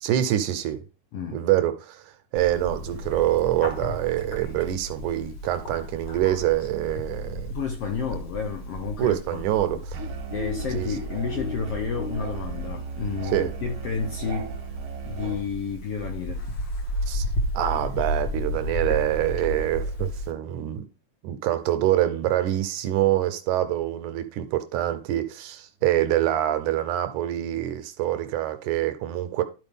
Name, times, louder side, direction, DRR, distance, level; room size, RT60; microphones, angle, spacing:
voice 1, 0.0-0.8 1.3-2.0 2.3-7.5 9.0-10.0 10.7-10.9 13.3-13.5 17.1-17.2 17.5-20.9 21.2-29.4, right 13 dB, 80° right, 2.0 m, -25 dB
voice 2, 1.1-1.4 7.5-9.5 9.7-9.8 10.3-14.6 15.0-16.5, left 6 dB, 75° left, 1.4 m, -31 dB
Bird, 2.4-20.3, equal, 45° left, 1.6 m, -33 dB
Musical instrument, 9.9-15.5, right 5 dB, 65° right, 1.5 m, -36 dB
11.5 x 4.7 x 3.5 m
omnidirectional pair, 3.8 m